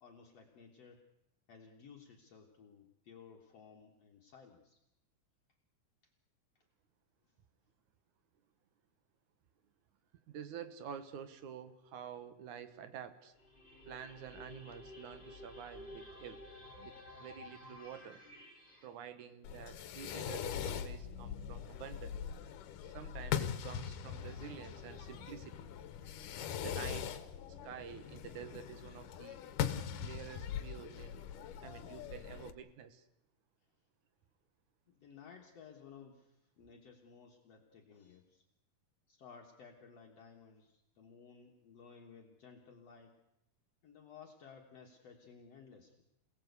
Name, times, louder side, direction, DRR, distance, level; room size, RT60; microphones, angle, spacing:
voice 1, 0.0-1.1 1.5-4.8 6.0-6.1 6.6-6.7 7.2-7.4 33.6-33.7 34.9-38.5 39.1-43.2 43.8-46.0, left 6 dB, 55° left, 1 dB, 2.5 m, -57 dB
voice 2, 10.3-13.3 13.9-16.4 16.8-18.2 18.8-22.2 22.8-25.7 26.6-27.1 27.5-29.4 30.0-31.4 31.6-33.0, right 8 dB, 70° right, 11 dB, 2.7 m, -49 dB
sound 1, 13.4-18.9, left 1 dB, 20° left, 4.5 m, -53 dB
Fireworks, 19.4-32.5, left 9 dB, 85° left, 2.7 m, -41 dB
27.5 x 17.5 x 8.2 m, 0.87 s
omnidirectional pair, 3.6 m